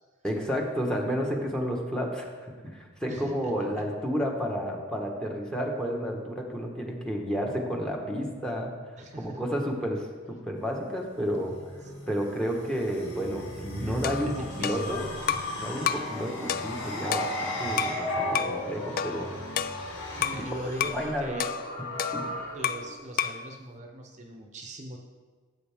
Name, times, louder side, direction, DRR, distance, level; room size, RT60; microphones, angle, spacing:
voice 1, 0.2-8.7 9.2-11.5 12.1-15.1 15.6-19.3 20.1-20.4 20.9-21.4 22.1-22.3, equal, 5° left, 0 dB, 1.2 m, -31 dB
voice 2, 3.1-3.7 9.0-9.4 11.8-11.9 13.8-14.0 14.2-15.4 15.9-16.1 20.1-21.5 22.5-25.0, right 1 dB, 35° right, 2 dB, 0.9 m, -40 dB
sound 1, 10.6-22.9, left 1 dB, 65° left, 2.2 m, -36 dB
sound 2, 14.0-15.6 15.9-16.1 16.5-18.0 18.3-18.6 19.0-20.5 20.8-21.0 21.4-22.9 23.2-23.5, left 8 dB, 45° left, 0.3 m, -31 dB
13.5 x 7.9 x 3.6 m, 1.5 s
head